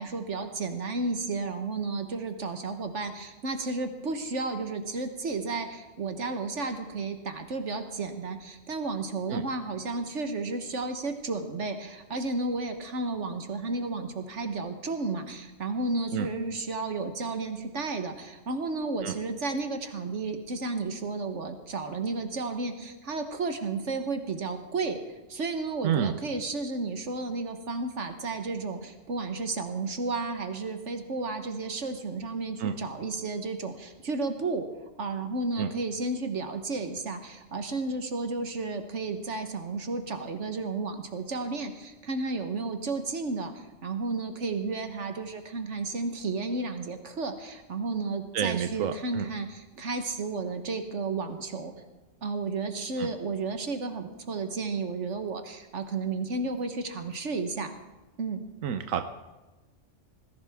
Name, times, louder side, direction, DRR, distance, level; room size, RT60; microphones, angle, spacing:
voice 1, 0.0-34.6 35.0-51.7 52.2-57.7 58.2-58.4, right 3 dB, 65° right, 7 dB, 1.5 m, -32 dB
voice 2, 48.3-49.3 53.0-53.1 58.6-59.0, right 8 dB, 85° right, 8 dB, 1.2 m, -29 dB
20.0 x 16.0 x 3.6 m, 1.1 s
omnidirectional pair, 1.4 m